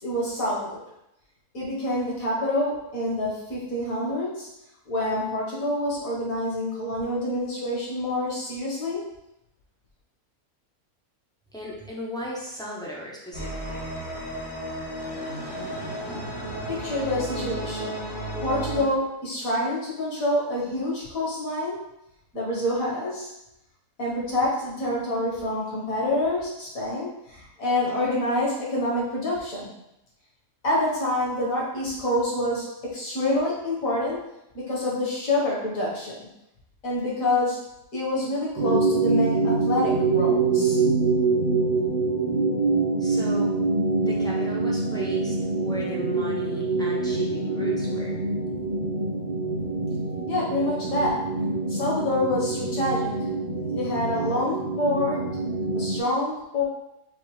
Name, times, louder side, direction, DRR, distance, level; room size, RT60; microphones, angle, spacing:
voice 1, 0.0-0.8 1.5-4.5 4.9-9.0 16.7-17.9 18.4-21.8 22.3-23.3 24.0-29.7 30.6-34.2 34.5-36.2 36.8-37.6 37.9-40.8 50.3-51.2 51.7-53.1 53.7-55.3 55.7-56.6, left 1 dB, 65° left, -5 dB, 1.9 m, -27 dB
voice 2, 11.5-13.8 43.0-43.5 44.0-48.2, equal, 5° left, -5 dB, 0.6 m, -36 dB
sound 1, 13.3-18.8, right 1 dB, 90° left, 2.3 m, -33 dB
sound 2, 38.6-56.0, right 3 dB, 70° right, 0.4 m, -25 dB
6.4 x 2.5 x 3.2 m, 0.85 s
omnidirectional pair, 1.5 m